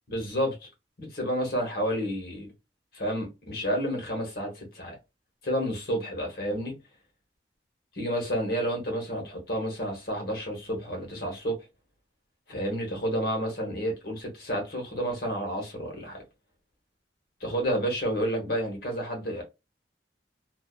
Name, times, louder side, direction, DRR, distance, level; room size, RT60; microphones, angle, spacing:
voice 1, 0.1-0.7 1.0-2.5 2.9-5.0 5.4-6.8 7.9-11.7 12.5-16.2 17.4-19.4, equal, 55° left, 0.9 m, -30 dB
2.5 x 2.1 x 2.3 m
head